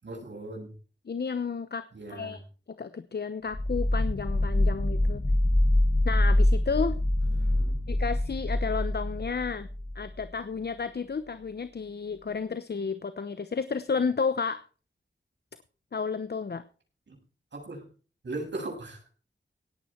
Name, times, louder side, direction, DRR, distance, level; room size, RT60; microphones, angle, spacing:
voice 1, 0.0-0.7 1.9-2.4 7.2-7.8 17.1-17.2 17.5-17.8 18.2-19.2, right 2 dB, 75° right, 1 dB, 7.8 m, -39 dB
voice 2, 1.1-2.4 2.8-5.2 6.0-7.0 7.9-9.7 9.9-14.6 15.9-16.6, left 5 dB, 60° left, 13 dB, 1.0 m, -32 dB
sound 1, 3.5-10.2, left 1 dB, 30° left, 2.1 m, -25 dB
18.0 x 9.0 x 4.5 m, 0.37 s
wide cardioid pair, 65°, 19 cm